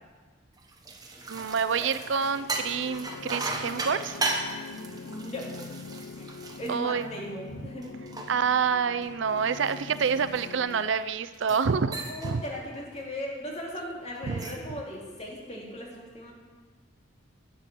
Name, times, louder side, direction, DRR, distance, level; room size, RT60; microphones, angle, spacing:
sound 1, 0.6-7.4 7.8-10.8 11.3-11.7 11.9-12.4 12.7-13.0 14.1-14.7, right 2 dB, 20° right, 1.1 m, -36 dB
sound 2, 1.3-10.9, left 4 dB, 80° left, 0.5 m, -44 dB
voice 1, 1.3-4.2 6.7-7.1 8.3-12.0 12.2-12.4 14.3-14.4, right 6 dB, 65° right, 13 dB, 0.5 m, -27 dB
voice 2, 4.8-5.5 6.1-7.9 12.0-16.3, equal, 30° left, -2 dB, 2.8 m, -38 dB
11.5 x 9.0 x 6.8 m, 1.4 s
head